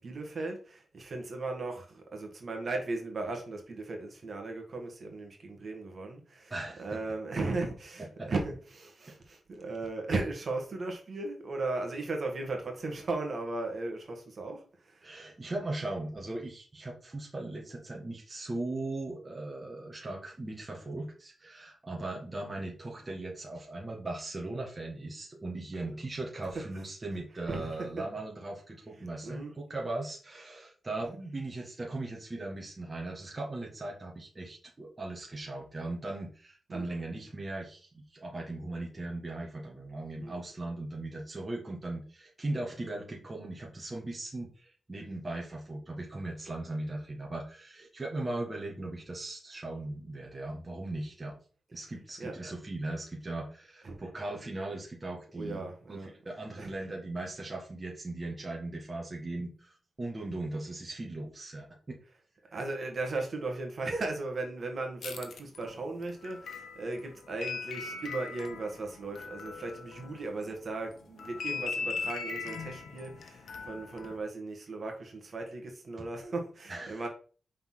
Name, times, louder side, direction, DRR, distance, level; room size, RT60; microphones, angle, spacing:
voice 1, 0.0-6.5 6.8-15.1 25.8-26.0 27.5-27.7 29.2-29.5 36.7-36.9 40.2-40.3 52.2-52.3 53.8-54.0 55.3-56.1 56.6-56.7 62.5-77.1, right 3 dB, 45° right, 1.8 m, -37 dB
voice 2, 6.5-7.0 8.2-8.3 15.0-51.3 51.7-62.0 76.0-76.1 76.7-77.0, right 2 dB, 25° right, 1.6 m, -38 dB
sound 1, 65.0-70.5 70.9-74.2, left 5 dB, 75° left, 1.1 m, -39 dB
5.8 x 4.3 x 5.8 m
wide cardioid pair, 125°, 0 cm